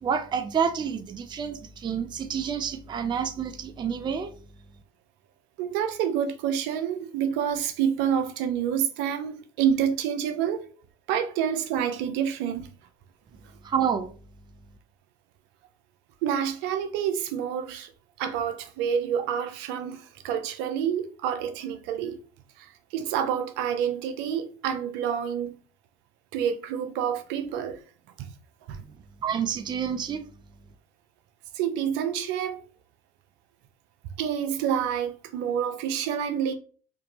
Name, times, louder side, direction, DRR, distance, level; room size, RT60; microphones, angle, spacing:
voice 1, 0.0-4.3 13.6-14.1 29.2-30.3, right 7 dB, 25° right, 0.5 m, -28 dB
voice 2, 5.6-10.7 11.1-12.7 16.2-17.9 18.2-22.2 22.6-25.6 26.3-27.8 28.2-28.3 28.7-28.8 31.5-32.6 34.2-36.5, right 8 dB, 70° right, 0.7 m, -28 dB
3.5 x 2.9 x 2.9 m
supercardioid pair, 90°, 19 cm